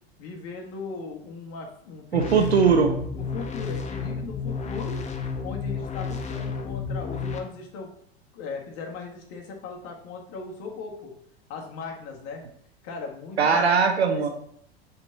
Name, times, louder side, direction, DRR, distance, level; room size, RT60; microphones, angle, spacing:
voice 1, 0.2-2.5 3.2-5.0 5.4-7.9 8.3-11.1 11.5-12.4 12.8-13.5, left 4 dB, 50° left, 1 dB, 1.8 m, -38 dB
sound 1, 2.1-7.4, left 5 dB, 20° left, 0.8 m, -31 dB
voice 2, 2.1-2.9 13.4-14.3, right 5 dB, 80° right, 5 dB, 1.2 m, -20 dB
7.1 x 4.2 x 4.1 m, 0.67 s
figure-of-eight pair, 90°, 32 cm